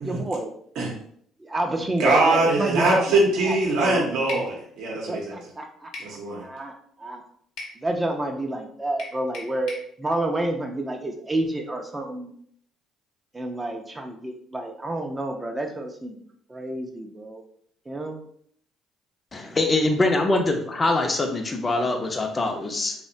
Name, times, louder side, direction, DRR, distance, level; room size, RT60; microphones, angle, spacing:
voice 1, 0.0-0.5 1.4-3.2 3.4-4.0 5.1-5.9 6.4-6.7 7.0-7.2 7.8-12.3 13.3-16.2 16.5-17.4 17.9-18.2, right 1 dB, 20° right, 3 dB, 0.4 m, -29 dB
voice 2, 2.0-5.4 6.0-6.4, right 2 dB, 70° right, -2 dB, 0.6 m, -22 dB
sound 1, 4.3-4.5 5.9-6.2 7.6-7.8 9.0-9.9, left 2 dB, 70° left, 0.7 m, -37 dB
voice 3, 19.3-22.9, left 2 dB, 30° left, 4 dB, 0.5 m, -23 dB
2.7 x 2.1 x 2.5 m, 0.64 s
hypercardioid pair, 60°, 0 cm